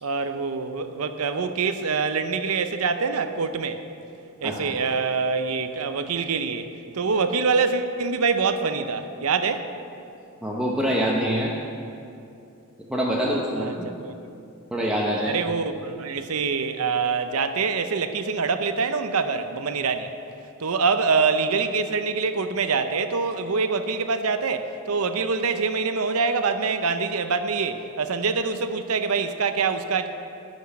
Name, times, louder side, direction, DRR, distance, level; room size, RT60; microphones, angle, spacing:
voice 1, 0.0-3.8 4.4-6.7 6.9-9.7 13.2-14.1 15.2-20.1 20.6-30.1, right 4 dB, 80° right, 9 dB, 0.7 m, -25 dB
voice 2, 4.4-4.7 10.4-11.5 12.9-13.9 14.7-15.4, equal, 5° right, -5 dB, 0.9 m, -25 dB
11.5 x 6.2 x 8.7 m, 2.6 s
head